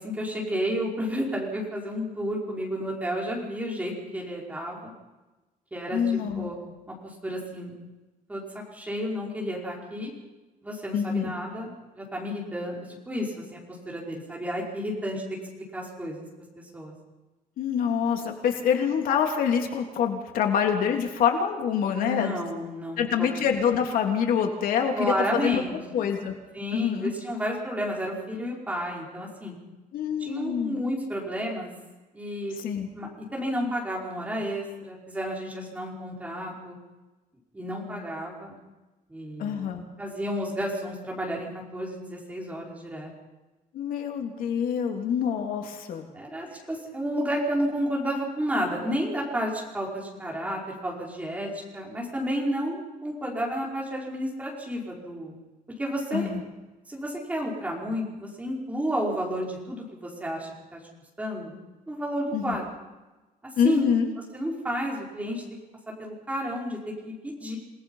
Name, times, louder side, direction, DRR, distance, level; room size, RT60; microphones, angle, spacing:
voice 1, 0.0-4.9 5.7-6.0 6.3-6.6 6.9-7.7 8.3-8.4 8.7-10.1 10.6-16.3 16.6-16.9 21.9-23.3 25.0-25.7 26.5-29.5 30.2-31.7 32.1-32.5 32.9-36.8 37.5-38.6 39.1-39.7 40.0-43.1 46.1-55.3 55.8-56.3 56.9-60.8 61.2-61.5 61.9-62.6 63.6-63.9 64.3-65.4 66.0-67.6, equal, 10° right, -2 dB, 5.4 m, -31 dB
voice 2, 5.9-6.5 10.9-11.3 17.6-22.3 23.0-25.6 25.9-26.3 26.7-27.1 29.9-30.8 32.6-32.9 39.4-39.8 43.7-46.1 56.1-56.4 62.3-62.6 63.6-64.1, left 7 dB, 75° left, 3 dB, 3.1 m, -26 dB
28.5 x 19.0 x 5.7 m, 1.1 s
cardioid pair, 175°, 15 cm